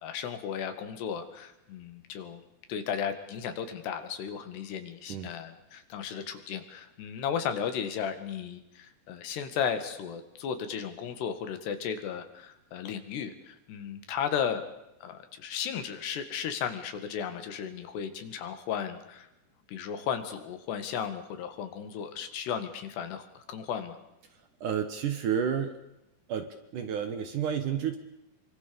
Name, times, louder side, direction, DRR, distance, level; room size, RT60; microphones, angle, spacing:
voice 1, 0.0-2.4 2.7-14.6 15.0-19.3 19.7-24.0, left 8 dB, 75° left, 8 dB, 4.0 m, -35 dB
voice 2, 24.6-25.8 26.3-28.0, right 8 dB, 60° right, 8 dB, 2.5 m, -30 dB
25.5 x 24.5 x 7.0 m, 0.89 s
omnidirectional pair, 4.9 m